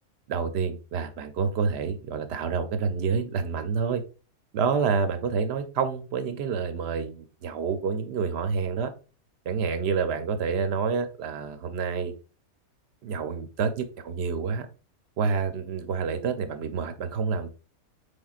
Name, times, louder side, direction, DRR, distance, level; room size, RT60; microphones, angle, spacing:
voice 1, 0.3-4.0 4.5-8.9 9.5-12.1 13.0-14.7 15.2-17.5, right 5 dB, 60° right, 9 dB, 0.7 m, -28 dB
5.4 x 3.4 x 2.4 m, 0.34 s
omnidirectional pair, 1.5 m